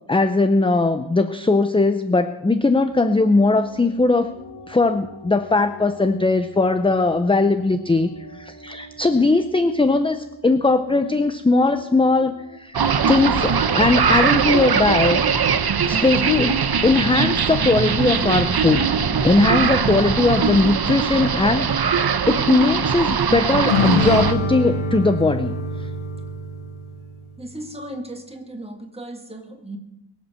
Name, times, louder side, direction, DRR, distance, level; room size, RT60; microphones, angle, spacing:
voice 1, 0.1-4.3 4.7-15.2 15.9-18.9 19.2-22.0 22.3-25.5, left 3 dB, 10° left, 9 dB, 0.5 m, -19 dB
sound 1, 2.6-12.6, left 1 dB, 30° left, 3.2 m, -44 dB
sound 2, 12.7-24.3, right 6 dB, 50° right, 0.9 m, -21 dB
sound 3, 23.7-27.3, left 2 dB, 75° left, 1.5 m, -25 dB
voice 2, 27.4-29.8, right 1 dB, 10° right, 3 dB, 2.0 m, -36 dB
22.0 x 8.2 x 6.7 m, 0.93 s
wide cardioid pair, 155°, 49 cm